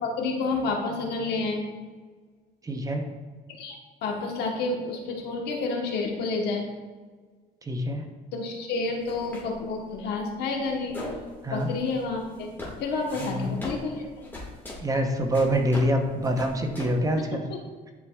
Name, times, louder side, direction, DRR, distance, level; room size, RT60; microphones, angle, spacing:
voice 1, 0.0-1.7 3.5-6.7 8.3-11.0 11.5-12.5 12.8-14.3 17.2-17.6, left 3 dB, 80° left, 1 dB, 1.3 m, -30 dB
voice 2, 2.6-3.1 7.6-8.1 11.4-11.7 13.2-13.5 14.8-17.5, equal, 20° right, 4 dB, 0.8 m, -26 dB
sound 1, 9.0-17.2, left 1 dB, 10° left, 1.9 m, -41 dB
10.5 x 4.6 x 2.4 m, 1.4 s
cardioid pair, 110°, 17 cm